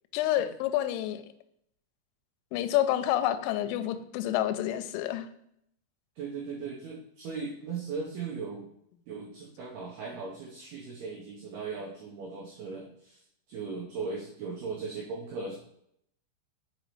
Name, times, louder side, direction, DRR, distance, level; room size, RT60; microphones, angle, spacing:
voice 1, 0.1-1.2 2.5-5.3, left 12 dB, 85° left, 9 dB, 3.0 m, -28 dB
voice 2, 6.2-8.7 9.1-13.2 13.5-15.6, right 4 dB, 85° right, -2 dB, 2.2 m, -38 dB
6.6 x 5.2 x 3.1 m, 0.73 s
omnidirectional pair, 5.9 m